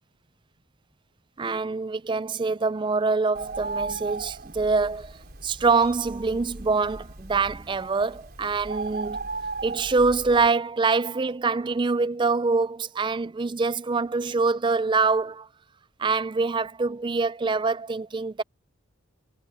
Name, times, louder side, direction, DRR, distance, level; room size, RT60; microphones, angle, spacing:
voice 1, 1.4-9.2 9.6-15.5 16.0-18.4, right 4 dB, 20° right, 0.4 m, -25 dB
Bird, 3.3-10.5, right 3 dB, 45° right, 4.2 m, -37 dB
head